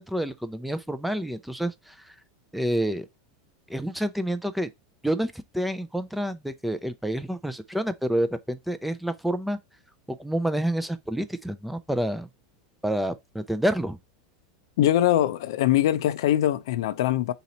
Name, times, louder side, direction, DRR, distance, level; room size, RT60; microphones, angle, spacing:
voice 1, 0.0-2.1 2.5-3.1 3.7-4.7 5.0-9.6 10.1-12.3 12.8-14.0, right 1 dB, ahead, 0.4 m, -28 dB
voice 2, 14.8-17.3, left 12 dB, 75° left, 0.4 m, -22 dB
3.9 x 2.9 x 4.1 m
supercardioid pair, 120°, 2 cm